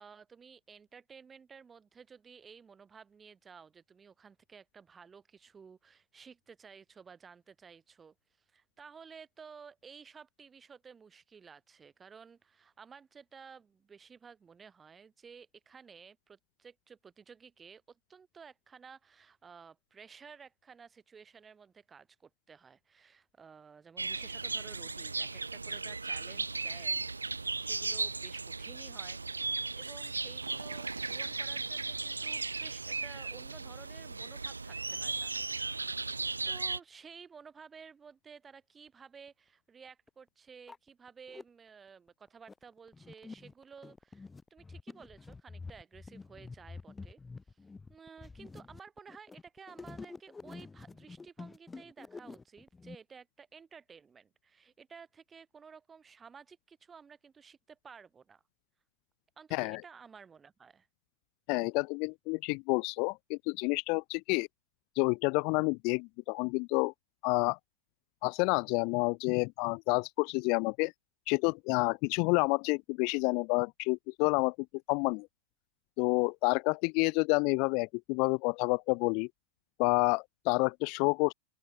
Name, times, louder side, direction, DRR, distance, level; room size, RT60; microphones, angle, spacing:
voice 1, 0.0-8.1 8.5-27.0 27.4-36.2 36.4-47.2 47.5-47.6 47.9-58.4 59.4-60.9, right 6 dB, 20° right, 6.1 m, -54 dB
sound 1, 24.0-36.8, right 3 dB, 80° right, 0.5 m, -36 dB
sound 2, 39.3-39.4 40.1-40.2 40.5-41.4 42.1-52.9, left 4 dB, 10° left, 1.1 m, -48 dB
voice 2, 61.5-64.5 65.0-66.9 67.2-67.6 68.2-70.9 71.3-74.5 74.9-75.3 76.0-79.3 79.8-81.3, left 32 dB, 45° left, 0.3 m, -29 dB
open air
figure-of-eight pair, 90°, 0 cm